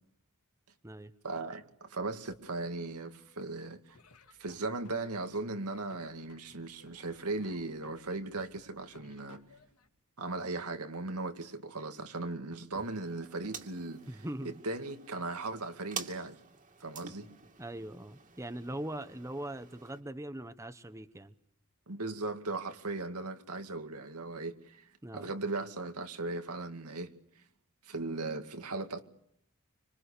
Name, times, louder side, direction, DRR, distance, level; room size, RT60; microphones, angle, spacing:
voice 1, 1.2-4.0 4.4-9.4 10.2-14.0 14.4-16.4 16.8-17.3 21.9-27.1 27.8-29.0, right 3 dB, 85° right, 2.3 m, -38 dB
Laughter / Drum, 3.9-9.9, left 4 dB, 80° left, 2.2 m, -59 dB
sound 1, 12.7-20.0, right 6 dB, 35° right, 2.7 m, -48 dB
voice 2, 14.1-14.6 17.6-21.3 25.0-25.3, right 1 dB, 15° right, 1.0 m, -41 dB
26.0 x 26.0 x 6.8 m
head